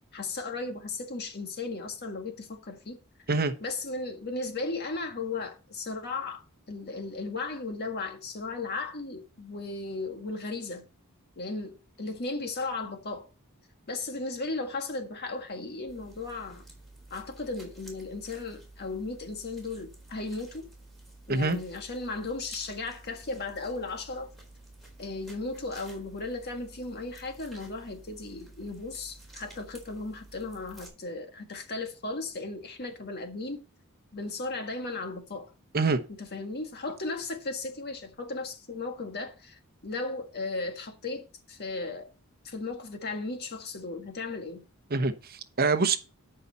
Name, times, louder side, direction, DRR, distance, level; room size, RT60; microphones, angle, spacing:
voice 1, 0.1-3.0 3.6-10.8 11.4-13.3 13.9-16.6 17.1-20.7 21.3-24.3 25.0-33.6 34.1-35.5 36.2-42.1 42.4-44.6, left 3 dB, 50° left, 1.7 m, -36 dB
sound 1, 15.9-30.9, right 2 dB, ahead, 4.1 m, -51 dB
voice 2, 44.9-46.0, right 3 dB, 45° right, 0.9 m, -25 dB
12.5 x 5.6 x 4.1 m
head